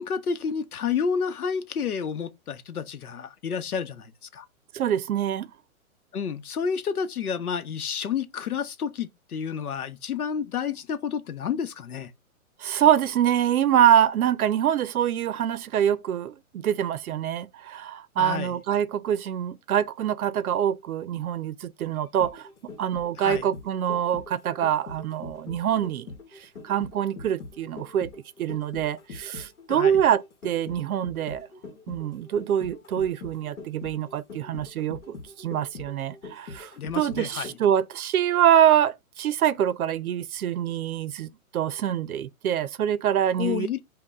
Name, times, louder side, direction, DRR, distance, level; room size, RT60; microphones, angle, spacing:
voice 1, 0.0-4.5 6.1-12.1 18.2-18.6 23.1-23.5 29.7-30.0 36.8-37.5 43.4-43.8, left 7 dB, 90° left, 0.8 m, -30 dB
voice 2, 4.7-5.5 12.6-22.5 22.8-26.1 26.4-28.1 28.4-31.5 31.9-43.7, right 10 dB, 80° right, 0.6 m, -25 dB
sound 1, 22.0-37.8 38.2-38.3, left 4 dB, 70° left, 1.1 m, -43 dB
5.2 x 2.2 x 4.0 m
hypercardioid pair, 135°, 43 cm